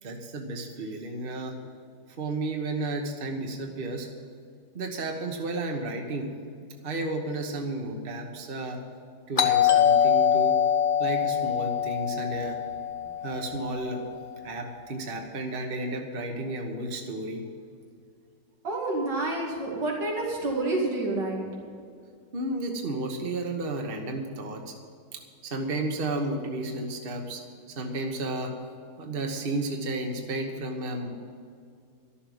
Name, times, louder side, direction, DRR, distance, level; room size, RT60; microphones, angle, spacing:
voice 1, 0.0-1.6 2.2-4.1 4.7-6.3 6.8-8.8 9.3-10.6 11.0-12.6 13.2-14.0 14.4-17.4 22.3-24.7 25.1-27.4 27.7-28.5 29.0-31.1, right 2 dB, 35° right, 3 dB, 1.3 m, -32 dB
Doorbell, 9.4-14.0, left 8 dB, 35° left, 1.0 m, -24 dB
voice 2, 18.6-21.4, right 2 dB, 90° right, -2 dB, 3.1 m, -28 dB
13.0 x 7.1 x 9.3 m, 2.3 s
omnidirectional pair, 1.9 m